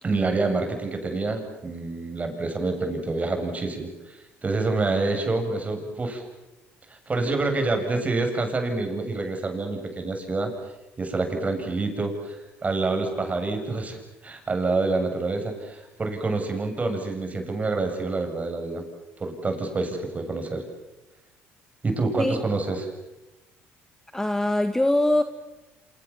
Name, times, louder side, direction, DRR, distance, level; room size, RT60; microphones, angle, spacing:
voice 1, 0.0-6.2 6.9-10.5 11.0-12.4 12.6-18.8 19.2-20.7 21.8-22.9, right 3 dB, 30° right, 5 dB, 7.9 m, -27 dB
voice 2, 24.1-25.2, left 1 dB, 10° left, 8 dB, 1.7 m, -22 dB
29.5 x 27.0 x 7.5 m, 0.98 s
supercardioid pair, 80°, 5 cm